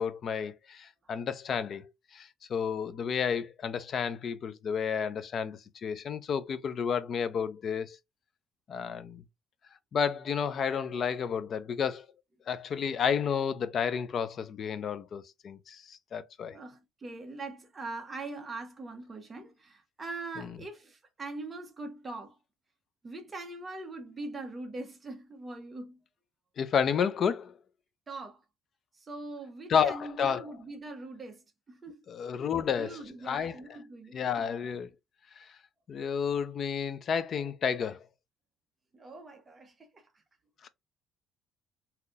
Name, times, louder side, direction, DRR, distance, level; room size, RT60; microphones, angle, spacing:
voice 1, 0.0-8.0 8.7-9.2 9.9-12.1 12.5-16.6 20.4-20.5 26.6-27.5 29.7-30.5 32.1-33.0 33.3-33.6 34.1-34.9 35.4-35.5 35.9-38.0 40.6-40.7, left 7 dB, 35° left, 0.4 m, -31 dB
voice 2, 16.5-22.4 23.0-26.0 28.1-28.4 28.9-32.0 32.8-34.5 38.9-40.0, right 2 dB, 20° right, 0.9 m, -42 dB
3.8 x 2.8 x 2.3 m
cardioid pair, 165°, 0 cm